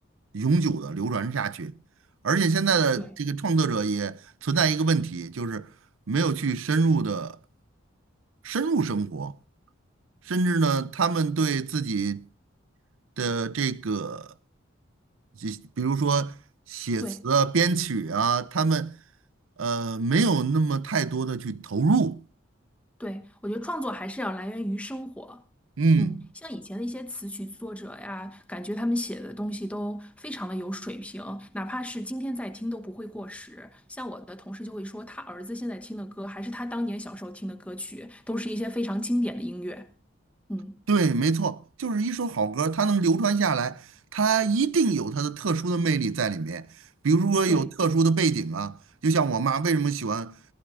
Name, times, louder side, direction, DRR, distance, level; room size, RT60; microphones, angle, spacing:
voice 1, 0.3-1.7 2.2-5.7 6.1-7.4 8.4-9.4 10.3-12.2 13.2-14.3 15.4-16.4 16.7-18.9 19.6-22.2 25.8-26.2 40.9-43.9 44.1-46.7 47.0-48.8 49.0-50.3, right 4 dB, 90° right, 0.6 m, -25 dB
voice 2, 23.0-25.4 26.0-39.9 40.5-40.8 47.5-47.6, equal, 5° left, 1.0 m, -33 dB
19.0 x 14.5 x 2.5 m
head